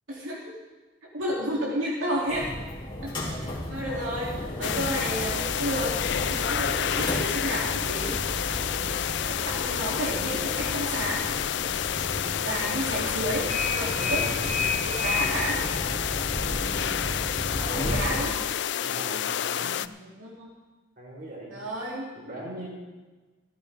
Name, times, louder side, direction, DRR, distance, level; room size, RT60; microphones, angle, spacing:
voice 1, 0.1-0.6 1.1-2.5 3.0-8.2 9.2-11.2 12.1-15.6 17.8-18.4 20.0-20.5 21.5-22.4, equal, 80° right, -5 dB, 3.0 m, -32 dB
sound 1, 2.3-18.2, left 1 dB, 25° left, 2.9 m, -33 dB
voice 2, 2.9-3.3 8.5-8.9 14.1-14.4 17.6-18.4 18.8-19.8 21.0-21.6 22.1-22.7, right 1 dB, 50° right, -3 dB, 4.4 m, -41 dB
sound 2, 4.6-19.9, left 9 dB, 60° left, 0.4 m, -29 dB
16.5 x 14.5 x 3.6 m, 1.3 s
head